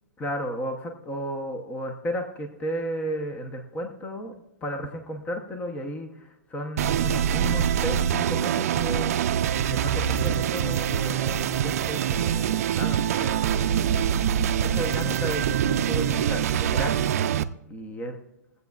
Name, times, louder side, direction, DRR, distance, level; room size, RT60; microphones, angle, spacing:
voice 1, 0.2-4.3 4.6-9.1 9.7-13.6 14.6-17.1 17.7-18.2, equal, 15° left, 5 dB, 0.9 m, -33 dB
sound 1, 6.8-17.4, right 9 dB, 60° right, 0.5 m, -24 dB
23.0 x 8.1 x 2.4 m, 0.91 s
hypercardioid pair, 150°, 9 cm